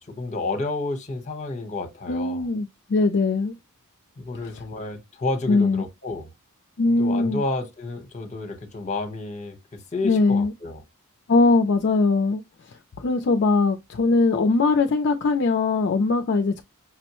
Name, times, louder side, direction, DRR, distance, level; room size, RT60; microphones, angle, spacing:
voice 1, 0.0-2.5 4.2-6.3 7.0-10.8, left 2 dB, 30° left, 0.9 m, -30 dB
voice 2, 2.1-3.5 5.5-5.8 6.8-7.4 10.0-10.5 11.3-12.4 13.0-16.6, left 3 dB, 50° left, 0.4 m, -21 dB
6.0 x 2.1 x 2.9 m
head